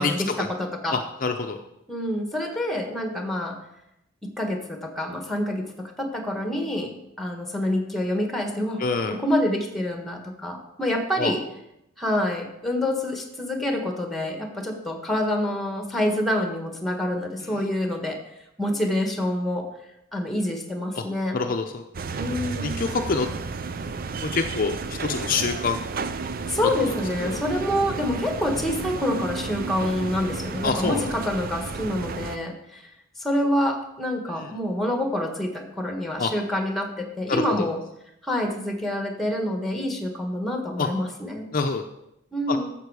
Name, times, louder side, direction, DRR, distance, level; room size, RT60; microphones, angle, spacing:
voice 1, 0.0-1.0 1.9-3.6 4.2-8.8 9.1-11.4 12.0-18.2 18.6-19.7 20.1-21.4 22.1-22.7 26.5-32.8 33.2-37.8 38.2-41.4 42.3-42.7, left 1 dB, ahead, 4 dB, 1.4 m, -27 dB
voice 2, 0.9-1.6 8.8-9.2 11.2-11.3 21.3-21.8 22.6-23.3 24.2-25.8 26.8-26.9 27.2-27.4 30.6-31.0 34.4-34.5 36.2-36.3 37.3-37.4 40.8-40.9 41.5-41.8 42.5-42.6, left 4 dB, 45° left, 5 dB, 0.6 m, -26 dB
sound 1, 21.9-32.4, right 4 dB, 45° right, 0.5 m, -32 dB
11.5 x 7.5 x 4.8 m, 0.83 s
head